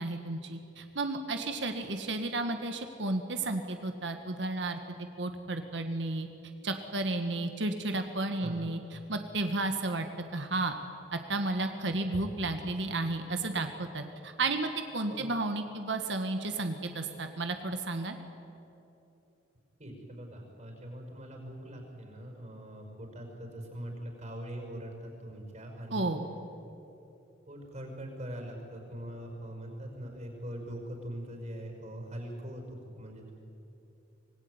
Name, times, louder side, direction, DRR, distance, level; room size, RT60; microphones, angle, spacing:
voice 1, 0.0-6.3 6.6-10.1 10.3-10.7 11.1-18.2 25.9-26.3, right 2 dB, 70° right, 6 dB, 1.6 m, -33 dB
voice 2, 19.8-26.1 27.5-33.3, equal, 40° right, 2 dB, 5.6 m, -42 dB
25.0 x 19.5 x 9.7 m, 2.8 s
head